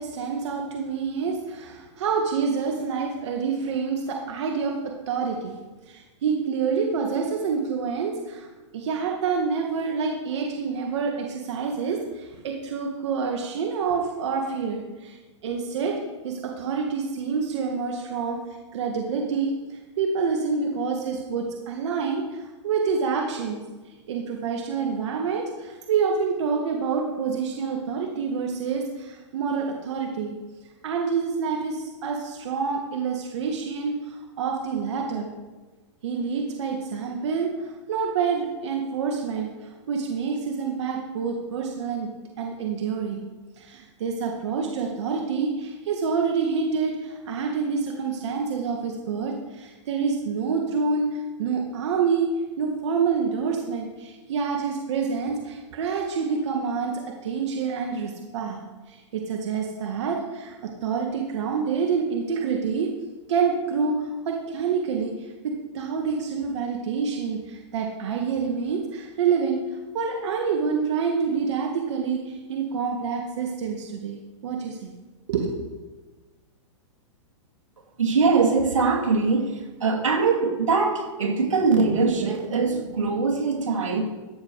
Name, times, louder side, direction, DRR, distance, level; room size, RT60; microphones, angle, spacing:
voice 1, 0.0-5.6 5.9-8.5 8.7-16.0 16.2-18.4 18.7-23.6 24.1-30.4 30.8-35.3 36.0-42.1 42.4-43.2 43.6-52.3 52.6-58.6 58.9-62.9 63.3-69.6 69.9-74.9 75.3-75.7, right 5 dB, 65° right, 1 dB, 1.7 m, -27 dB
voice 2, 78.0-84.1, right 4 dB, 90° right, 1 dB, 2.5 m, -22 dB
14.0 x 7.0 x 4.7 m, 1.2 s
hypercardioid pair, 135°, 16 cm